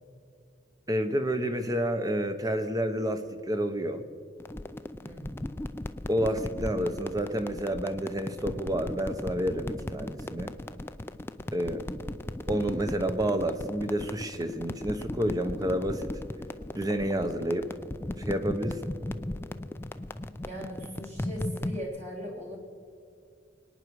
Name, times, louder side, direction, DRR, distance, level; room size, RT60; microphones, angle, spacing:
voice 1, 0.9-4.0 6.1-10.5 11.5-11.8 12.5-16.1 16.7-17.7 18.2-18.9, right 1 dB, 20° right, 8 dB, 0.9 m, -29 dB
sound 1, 4.4-21.8, left 1 dB, 15° left, 0.4 m, -37 dB
voice 2, 5.0-5.5 11.6-12.0 20.5-22.6, equal, 40° right, -1 dB, 3.2 m, -40 dB
23.0 x 9.8 x 4.7 m, 2.3 s
head